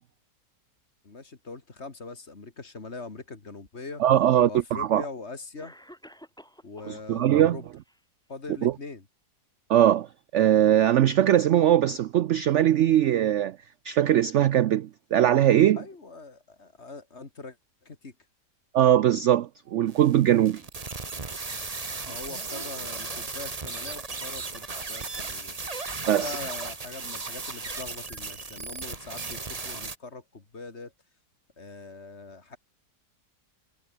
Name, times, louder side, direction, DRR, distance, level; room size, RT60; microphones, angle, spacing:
voice 1, 1.0-4.0 4.5-5.7 6.6-7.7 8.3-9.0 15.8-17.6 17.8-18.1 22.1-25.6 26.0-29.4 29.6-30.9 31.6-32.6, left 3 dB, 40° left, 2.6 m, -42 dB
Cough, 3.9-4.0 5.0-5.1 5.6-7.0 7.4-8.0, equal, ahead, 4.6 m, -50 dB
voice 2, 4.0-5.0 6.9-7.6 8.6-8.7 9.7-10.1 10.3-13.6 13.8-15.8 18.7-20.6 26.1-26.4, right 11 dB, 70° right, 0.7 m, -21 dB
sound 1, 19.9-30.0, right 3 dB, 25° right, 1.3 m, -36 dB
omnidirectional pair, 1.8 m